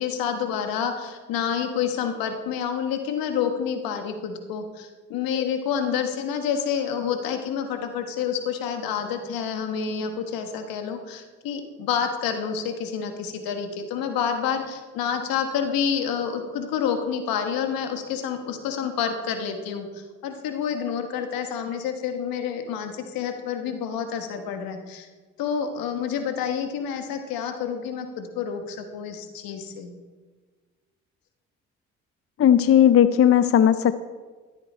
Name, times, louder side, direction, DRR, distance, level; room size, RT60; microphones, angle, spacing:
voice 1, 0.0-25.1 25.4-29.9, left 7 dB, 75° left, 6 dB, 1.3 m, -28 dB
voice 2, 32.4-33.9, left 10 dB, 40° left, 13 dB, 0.5 m, -16 dB
13.5 x 8.0 x 4.4 m, 1.4 s
hypercardioid pair, 50°, 35 cm